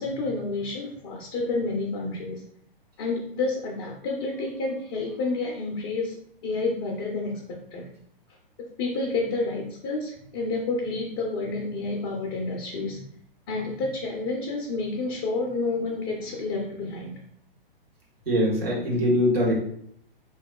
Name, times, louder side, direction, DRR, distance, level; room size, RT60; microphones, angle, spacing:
voice 1, 0.0-2.4 3.0-6.2 6.4-7.9 8.6-13.1 13.5-17.2, left 3 dB, 25° left, -1 dB, 0.4 m, -29 dB
voice 2, 18.3-19.5, equal, 85° right, -4 dB, 1.4 m, -22 dB
3.4 x 2.9 x 2.2 m, 0.67 s
hypercardioid pair, 125°, 29 cm